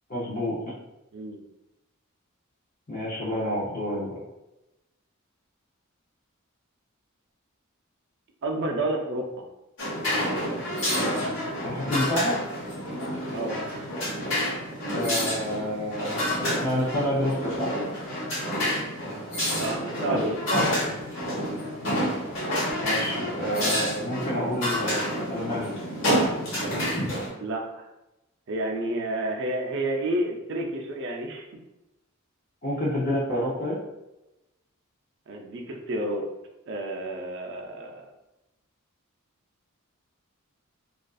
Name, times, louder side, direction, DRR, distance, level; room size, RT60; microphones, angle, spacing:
voice 1, 0.1-0.7 2.9-4.2 11.6-12.3 14.9-17.7 22.8-25.7 32.6-33.8, left 1 dB, 40° left, -7 dB, 0.6 m, -29 dB
voice 2, 8.4-9.4 13.3-13.6 19.5-21.4 27.4-27.8 28.5-31.5 35.3-36.2 36.7-38.1, right 1 dB, 55° right, 2 dB, 0.4 m, -30 dB
sound 1, 9.8-27.3, equal, 60° left, 1.1 m, -28 dB
2.5 x 2.4 x 2.3 m, 0.95 s
head